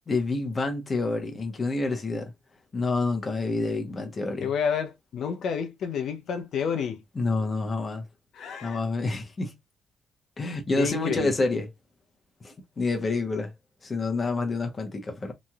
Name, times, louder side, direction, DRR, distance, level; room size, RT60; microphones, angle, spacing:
voice 1, 0.1-2.3 2.7-4.5 7.1-8.0 8.6-9.6 10.4-11.7 12.4-13.5 13.8-15.3, left 3 dB, 35° left, 1.0 m, -28 dB
voice 2, 4.4-7.0 8.3-8.8 10.8-11.3, left 7 dB, 70° left, 0.6 m, -29 dB
3.0 x 2.6 x 2.3 m
cardioid pair, 90°, 0 cm